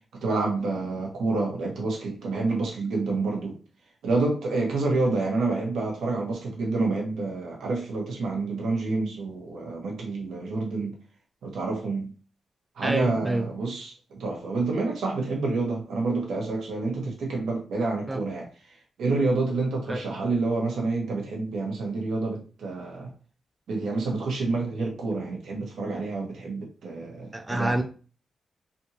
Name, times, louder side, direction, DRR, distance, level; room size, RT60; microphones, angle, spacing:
voice 1, 0.2-3.6 4.0-10.9 11.4-12.1 12.8-18.5 19.0-23.1 23.7-27.8, right 3 dB, 90° right, 1.1 m, -28 dB
voice 2, 12.8-13.5 18.1-18.2 19.9-20.0 27.3-27.8, right 1 dB, 10° right, 0.3 m, -27 dB
3.4 x 2.6 x 2.8 m
wide cardioid pair, 145°, 0 cm